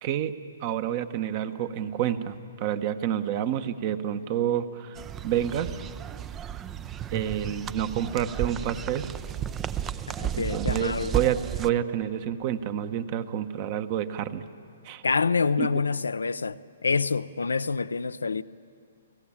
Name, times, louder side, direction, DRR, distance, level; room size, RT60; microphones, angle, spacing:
voice 1, 0.0-0.3 0.6-5.8 7.1-9.1 10.3-14.4 14.8-15.0 15.6-15.7, right 10 dB, 40° right, 1.2 m, -29 dB
sound 1, 5.0-11.7, right 9 dB, 20° right, 0.5 m, -33 dB
voice 2, 10.2-11.1 15.0-18.4, left 4 dB, 90° left, 0.5 m, -27 dB
29.5 x 17.5 x 8.8 m
hypercardioid pair, 130°, 0 cm